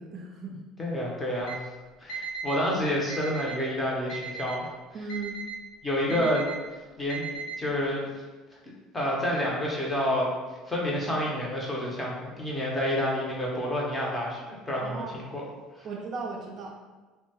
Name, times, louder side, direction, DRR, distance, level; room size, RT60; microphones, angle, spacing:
voice 1, 0.0-0.6 4.9-5.4 6.1-6.3 14.8-15.2 15.8-16.8, right 3 dB, 45° right, 0 dB, 0.4 m, -37 dB
voice 2, 0.8-1.6 2.0-4.7 5.8-6.5 7.0-7.3 7.6-8.2 8.9-10.3 10.7-15.4 15.8-15.9, left 1 dB, 15° left, -3 dB, 0.7 m, -29 dB
Alarm, 1.4-1.6 2.1-2.6 3.1-3.6 4.1-4.6 5.1-5.6 6.1-6.6 7.1-7.6, right 5 dB, 85° left, 0.4 m, -36 dB
2.6 x 2.1 x 2.8 m, 1.2 s
cardioid pair, 120°, 0 cm